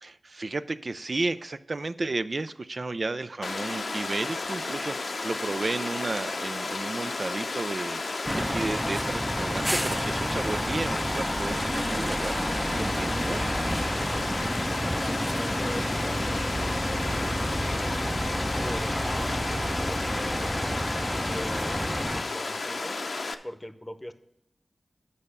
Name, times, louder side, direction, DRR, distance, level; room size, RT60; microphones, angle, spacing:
voice 1, 0.0-8.0 8.3-12.4 12.7-13.4, right 3 dB, 60° right, 12 dB, 0.4 m, -33 dB
Water, 3.4-23.3, left 3 dB, 75° left, 0.6 m, -33 dB
sound 1, 8.3-22.2, equal, 5° right, 0.6 m, -30 dB
voice 2, 12.7-13.5 14.0-17.0 17.5-23.0 23.4-24.1, left 1 dB, 15° left, 10 dB, 0.8 m, -42 dB
8.4 x 5.4 x 6.6 m, 0.81 s
cardioid pair, 40°, 0 cm